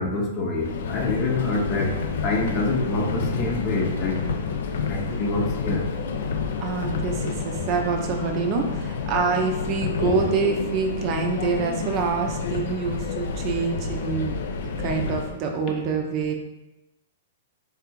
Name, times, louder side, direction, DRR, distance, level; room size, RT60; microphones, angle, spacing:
voice 1, 0.0-1.9 2.2-4.2 4.9-5.9, left 2 dB, 35° left, 1 dB, 0.7 m, -26 dB
Subway metro underground, 0.6-15.4, left 5 dB, 70° left, 0.4 m, -29 dB
voice 2, 6.6-14.4 14.8-16.3, right 5 dB, 40° right, 3 dB, 0.6 m, -26 dB
3.4 x 2.5 x 4.5 m, 0.95 s
hypercardioid pair, 135°, 0 cm